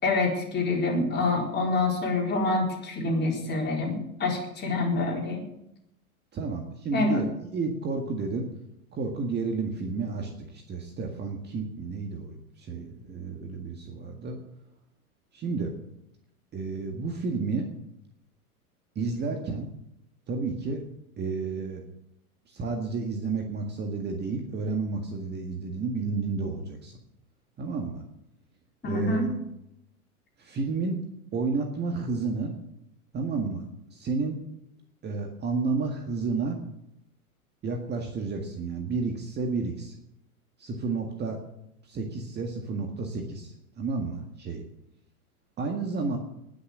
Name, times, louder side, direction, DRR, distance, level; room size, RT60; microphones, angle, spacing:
voice 1, 0.0-5.4 6.9-7.2 28.8-29.3, left 3 dB, 25° left, -1 dB, 4.4 m, -26 dB
voice 2, 6.3-7.3 7.5-8.5 8.9-14.4 15.3-15.7 16.5-17.7 19.0-19.7 20.3-20.8 21.2-21.8 22.5-27.0 27.6-28.0 28.8-29.3 30.4-31.0 31.3-32.5 33.1-33.6 33.9-34.4 35.0-36.6 37.6-39.9 40.6-41.4 41.9-44.6 45.6-46.2, right 4 dB, 25° right, 3 dB, 1.8 m, -31 dB
19.5 x 6.6 x 7.6 m, 0.80 s
figure-of-eight pair, 95°, 44 cm